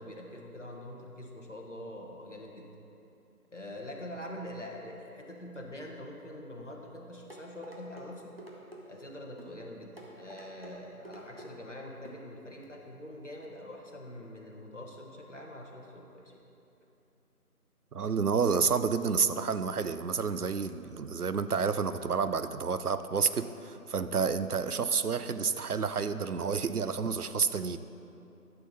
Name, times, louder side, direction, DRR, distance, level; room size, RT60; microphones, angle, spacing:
voice 1, 0.0-2.7 3.5-8.3 8.8-16.4, left 1 dB, 50° left, -1 dB, 1.3 m, -44 dB
sound 1, 7.3-8.1 8.4-8.8 9.4-9.5 10.0-10.7 11.0-11.5 12.0-12.2 12.6-12.7, right 1 dB, 40° right, 1.1 m, -48 dB
voice 2, 17.9-27.8, right 5 dB, 70° right, 12 dB, 0.6 m, -29 dB
11.5 x 6.8 x 4.2 m, 2.9 s
figure-of-eight pair, 175°, 46 cm